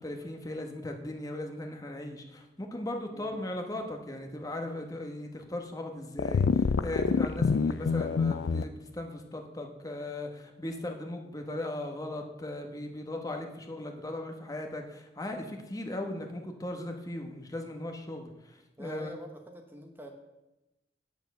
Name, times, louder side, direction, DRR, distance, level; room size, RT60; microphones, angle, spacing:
voice 1, 0.0-19.1, left 1 dB, 20° left, 3 dB, 1.1 m, -38 dB
voice 2, 3.1-3.5 18.8-20.1, right 1 dB, 10° right, 3 dB, 0.9 m, -45 dB
sound 1, 6.2-8.6, left 5 dB, 70° left, 0.4 m, -26 dB
8.8 x 7.1 x 6.8 m, 0.97 s
head